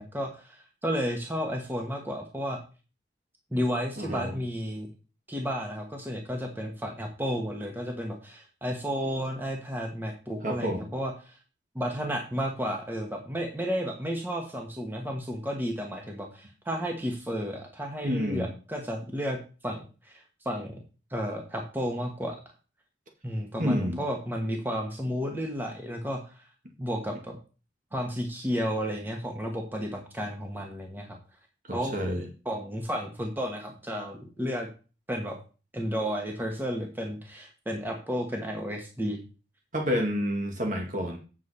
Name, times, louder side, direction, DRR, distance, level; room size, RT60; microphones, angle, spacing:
voice 1, 0.0-2.6 3.5-4.9 5.3-11.4 11.7-20.8 21.1-22.4 23.2-26.4 26.8-27.4 27.9-31.2 31.7-32.0 32.4-34.7 35.1-35.4 35.7-39.2, equal, 10° right, 2 dB, 1.2 m, -32 dB
voice 2, 4.0-4.3 10.4-10.9 18.0-18.5 23.6-24.0 31.7-32.3 39.7-41.2, equal, 45° right, 2 dB, 1.9 m, -29 dB
8.2 x 7.4 x 4.3 m, 0.34 s
head